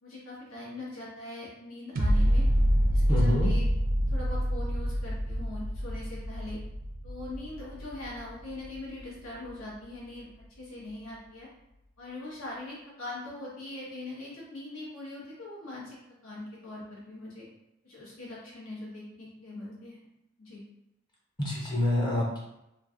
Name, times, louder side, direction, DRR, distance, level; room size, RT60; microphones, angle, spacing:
voice 1, 0.0-2.4 2.9-3.6 4.1-6.6 7.0-10.3 10.6-11.5 12.0-17.5 17.8-20.0 20.4-20.6, left 2 dB, 85° left, -6 dB, 1.2 m, -41 dB
sound 1, 2.0-9.0 9.5-9.6, equal, 45° right, 0.4 m, -27 dB
voice 2, 3.1-3.5 21.4-22.5, left 1 dB, 20° left, -4 dB, 0.5 m, -27 dB
3.1 x 2.6 x 2.4 m, 0.89 s
head